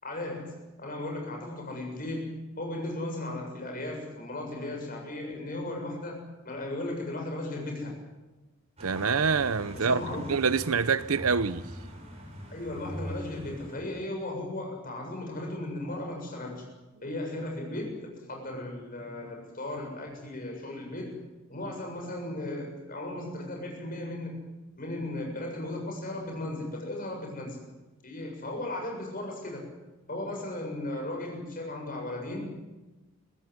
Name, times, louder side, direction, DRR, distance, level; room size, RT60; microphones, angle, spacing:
voice 1, 0.0-7.9 9.7-10.2 12.5-16.6 17.0-21.2 21.5-24.4 24.8-27.6 28.0-29.6 30.1-32.6, left 1 dB, 40° left, 7.3 m, -36 dB
sound 1, 8.8-13.8, equal, 30° right, 6.7 m, -42 dB
voice 2, 8.8-10.0 10.3-11.7, right 5 dB, 85° right, 0.9 m, -26 dB
24.0 x 15.0 x 9.8 m
head